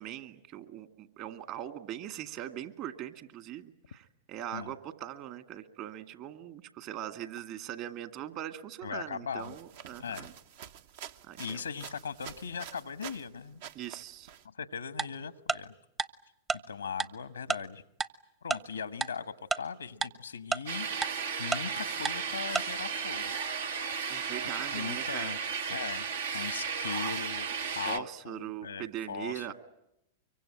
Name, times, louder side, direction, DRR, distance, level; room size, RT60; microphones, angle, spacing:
voice 1, 0.0-10.3 11.3-11.6 13.7-14.3 24.1-25.3 27.9-29.5, right 11 dB, 45° right, 9 dB, 2.1 m, -41 dB
voice 2, 8.8-9.6 10.0-10.3 11.4-13.6 14.5-15.7 16.7-17.8 18.4-23.3 24.5-25.4 25.7-26.0 26.3-27.5 27.7-29.5, left 6 dB, 85° left, 13 dB, 1.2 m, -39 dB
sound 1, 9.4-13.3 13.6-14.4, right 9 dB, 60° right, 1.0 m, -48 dB
Tick-tock, 15.0-15.1 15.5-15.6 16.0-16.1 16.5-16.6 17.0-17.1 17.5-17.6 18.0-18.1 18.5-18.6 19.0-19.1 19.5-19.6 20.0-20.1 20.5-20.6 21.0-21.1 21.5-21.6 22.1-22.2 22.6-22.7, right 4 dB, 20° right, 0.9 m, -29 dB
sound 2, 20.7-28.0, right 6 dB, 75° right, 1.3 m, -34 dB
24.5 x 23.5 x 8.9 m, 0.83 s
hypercardioid pair, 105°, 0 cm